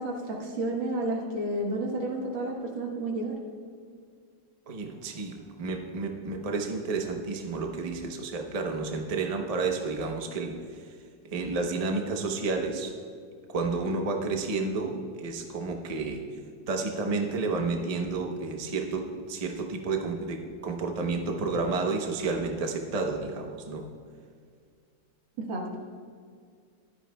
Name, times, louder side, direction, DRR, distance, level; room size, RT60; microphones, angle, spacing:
voice 1, 0.0-3.4 25.4-25.6, right 2 dB, 85° right, 0 dB, 2.1 m, -31 dB
voice 2, 4.7-10.5 10.8-10.9 11.3-12.9 13.5-16.2 16.7-23.9, right 3 dB, 55° right, 3 dB, 0.4 m, -31 dB
14.5 x 11.5 x 2.2 m, 2.1 s
omnidirectional pair, 2.1 m